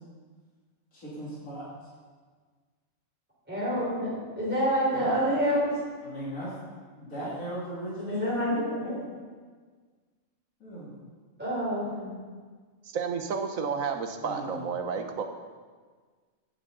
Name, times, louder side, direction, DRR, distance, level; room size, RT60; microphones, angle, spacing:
voice 1, 0.9-1.6 4.9-5.1 6.0-6.5 6.9-9.1 10.6-10.9 14.2-14.6, right 1 dB, 90° left, -9 dB, 3.5 m, -37 dB
voice 2, 3.5-5.7 8.1-8.9 11.4-12.1, equal, 10° right, -9 dB, 4.2 m, -27 dB
voice 3, 12.9-15.2, right 5 dB, 85° right, 6 dB, 1.4 m, -31 dB
15.5 x 10.5 x 3.9 m, 1.5 s
omnidirectional pair, 1.4 m